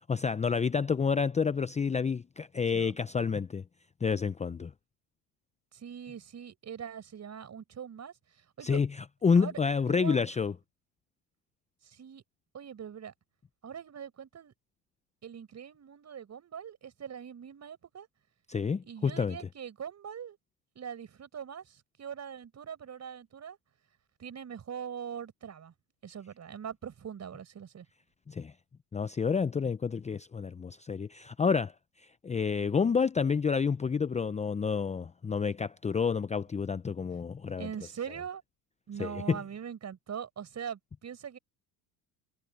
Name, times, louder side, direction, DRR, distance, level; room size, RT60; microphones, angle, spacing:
voice 1, 0.1-3.6 4.0-4.7 8.6-10.5 18.5-19.4 28.3-28.5 28.9-31.7 32.2-37.7 39.0-39.4, left 5 dB, 15° left, 0.7 m, -29 dB
voice 2, 5.7-8.8 9.4-9.6 9.9-10.2 11.8-12.2 12.5-13.1 13.6-14.5 15.2-18.1 18.8-20.4 20.7-23.6 24.2-25.7 26.0-27.9 37.6-38.4 38.9-41.4, right 8 dB, 35° right, 6.1 m, -42 dB
hypercardioid pair, 80°, 44 cm